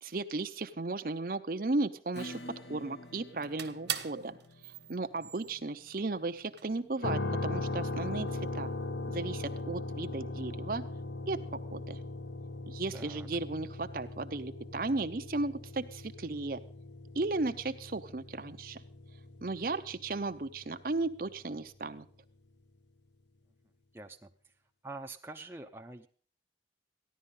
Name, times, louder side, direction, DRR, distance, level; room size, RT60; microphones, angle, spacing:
voice 1, 0.0-4.4 4.6-8.7 9.1-10.8 11.3-12.0 12.7-16.6 17.1-18.8 19.4-22.1, right 3 dB, 50° right, 8 dB, 0.7 m, -35 dB
Acoustic guitar / Strum, 2.1-9.3, left 1 dB, 65° left, 1.6 m, -51 dB
sound 1, 2.9-3.1 3.4-6.1 6.6-6.7 7.0-8.7 9.3-9.6, right 10 dB, 80° right, 1.4 m, -42 dB
sound 2, 7.0-21.0, left 2 dB, 85° left, 0.9 m, -39 dB
voice 2, 12.9-13.3 23.9-24.5 24.8-26.1, right 2 dB, 15° right, 3 dB, 0.7 m, -46 dB
15.0 x 11.0 x 5.4 m, 0.43 s
head